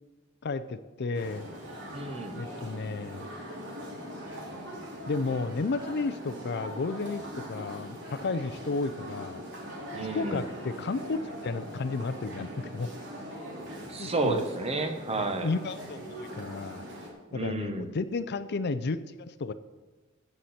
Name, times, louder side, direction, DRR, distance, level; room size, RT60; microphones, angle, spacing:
voice 1, 0.4-1.5 2.3-3.3 5.1-9.4 9.9-12.9 14.0-14.5 15.4-16.9 17.3-19.5, left 3 dB, 50° left, 13 dB, 0.5 m, -32 dB
sound 1, 1.1-17.1, equal, 60° right, 2.7 m, -41 dB
voice 2, 1.9-2.4 9.9-10.4 13.9-15.5 17.3-17.9, right 2 dB, 30° right, 6 dB, 1.1 m, -31 dB
15.5 x 7.9 x 4.3 m, 1.3 s
head